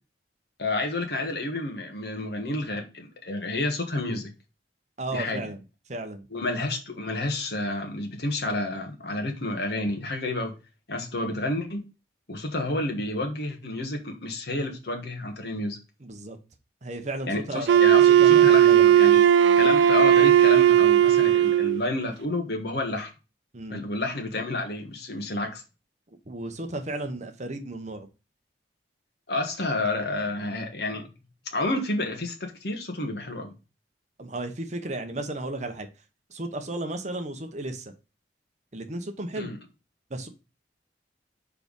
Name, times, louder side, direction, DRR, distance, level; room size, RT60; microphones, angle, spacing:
voice 1, 0.6-4.3 5.1-5.4 6.3-10.5 10.9-11.8 12.3-15.8 17.3-19.2 19.6-23.1 23.7-25.6 29.3-31.1 31.5-33.5 39.4-39.6, left 2 dB, 65° left, 1.4 m, -30 dB
voice 2, 5.0-5.6 5.9-6.3 16.0-16.4 16.8-17.8 18.1-18.9 23.5-23.8 26.3-28.1 34.2-35.9 36.3-37.9 38.7-39.5 40.1-40.3, right 2 dB, 40° right, 0.9 m, -34 dB
Wind instrument woodwind instrument, 17.7-21.8, right 10 dB, 85° right, 0.3 m, -17 dB
4.9 x 4.7 x 5.2 m
head